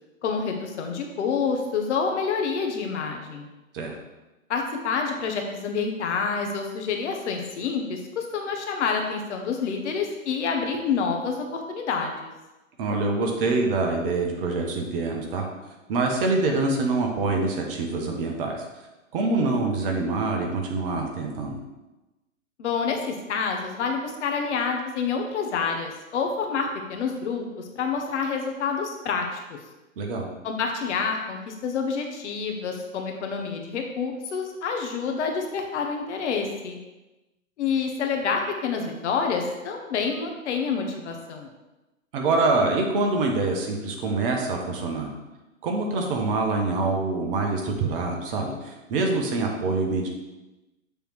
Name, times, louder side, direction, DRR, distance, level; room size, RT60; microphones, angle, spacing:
voice 1, 0.2-3.5 4.5-12.3 22.6-27.4 27.8-29.4 30.4-36.8 37.6-41.5, left 5 dB, 55° left, 3 dB, 1.4 m, -28 dB
voice 2, 12.8-15.4 15.9-18.5 19.1-21.6 30.0-30.3 42.1-45.1 45.6-50.1, right 3 dB, 40° right, 1 dB, 1.4 m, -25 dB
6.9 x 3.4 x 6.0 m, 1.1 s
hypercardioid pair, 125°, 41 cm